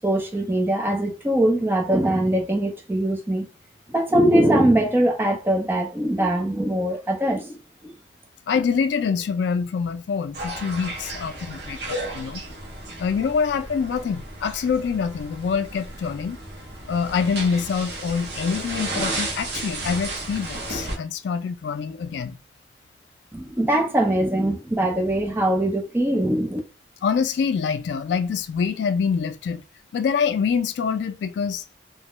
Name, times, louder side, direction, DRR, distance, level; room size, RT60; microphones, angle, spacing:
voice 1, 0.0-3.5 3.9-7.6 7.8-7.9 23.3-26.6, right 1 dB, 10° right, 0.4 m, -22 dB
voice 2, 8.5-12.4 13.0-16.4 16.9-22.4 27.0-29.6 29.9-31.8, left 6 dB, 80° left, 0.3 m, -25 dB
sound 1, 10.3-21.0, right 2 dB, 65° right, 0.7 m, -33 dB
2.3 x 2.1 x 2.9 m
head